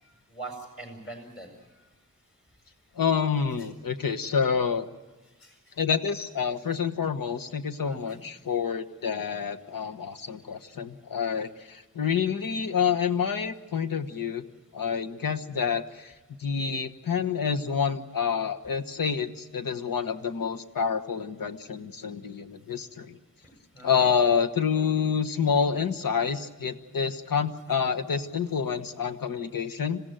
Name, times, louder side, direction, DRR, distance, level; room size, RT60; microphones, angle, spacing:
voice 1, 0.0-1.9 5.4-5.8 7.9-8.2 23.7-24.1, right 3 dB, 40° left, 3 dB, 7.0 m, -43 dB
voice 2, 2.9-4.9 5.8-14.4 14.7-16.1 16.4-23.2 23.8-30.0, left 6 dB, 85° left, 7 dB, 1.3 m, -28 dB
26.5 x 17.0 x 9.1 m, 1.2 s
wide cardioid pair, 115°, 33 cm